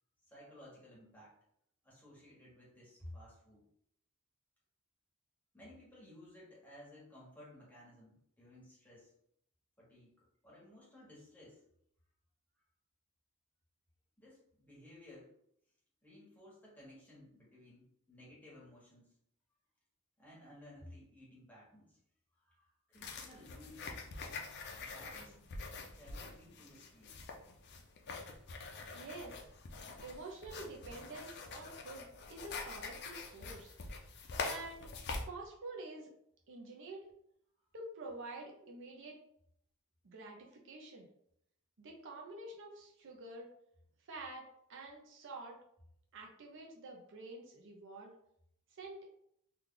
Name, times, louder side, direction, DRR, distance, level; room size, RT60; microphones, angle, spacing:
voice 1, 0.2-1.4 1.8-3.6 5.5-9.1 9.8-11.6 14.2-15.3 16.0-19.1 20.2-22.0 22.3-23.9 24.8-25.4 25.9-27.1, left 1 dB, 10° left, -6 dB, 1.3 m, -56 dB
sound 1, 22.9-35.2, left 4 dB, 50° left, 0.5 m, -45 dB
voice 2, 28.9-29.5 30.0-33.7 34.4-34.9 35.3-36.1 36.5-37.1 37.7-39.2 40.0-41.1 41.8-43.5 44.0-44.4 44.7-45.6 46.1-48.1 48.7-49.0, right 2 dB, 60° right, 0 dB, 0.6 m, -48 dB
3.1 x 2.4 x 3.7 m, 0.73 s
head